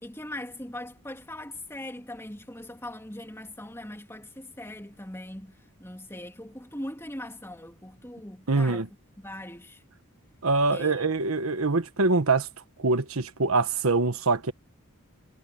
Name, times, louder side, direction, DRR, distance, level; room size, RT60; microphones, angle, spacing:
voice 1, 0.0-8.9 9.2-9.8 10.7-11.3, left 1 dB, 10° left, 3.3 m, -40 dB
voice 2, 8.5-8.9 10.4-12.5 12.8-14.5, right 3 dB, 85° right, 1.4 m, -24 dB
head